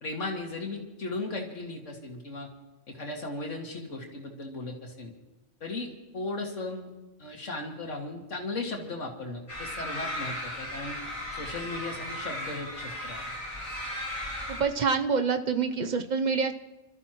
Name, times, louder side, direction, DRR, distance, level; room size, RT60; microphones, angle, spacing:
voice 1, 0.0-2.5 2.9-5.1 5.6-6.9 7.2-11.0 11.3-13.2, left 2 dB, 85° left, 1 dB, 2.5 m, -36 dB
sound 1, 9.5-14.6, left 1 dB, 25° left, 5.4 m, -36 dB
voice 2, 14.5-16.5, right 5 dB, 45° right, 7 dB, 0.8 m, -26 dB
27.5 x 13.5 x 3.0 m, 1.1 s
omnidirectional pair, 1.2 m